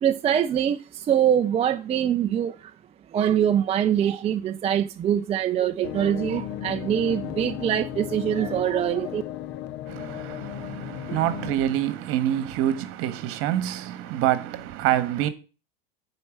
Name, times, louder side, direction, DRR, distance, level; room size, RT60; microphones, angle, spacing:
voice 1, 0.0-2.7 3.1-9.2, right 9 dB, 20° right, 0.4 m, -24 dB
sound 1, 5.8-11.6, left 12 dB, 40° left, 0.6 m, -35 dB
voice 2, 9.9-15.3, right 12 dB, 50° right, 1.4 m, -26 dB
8.7 x 4.6 x 7.1 m
hypercardioid pair, 110°, 30 cm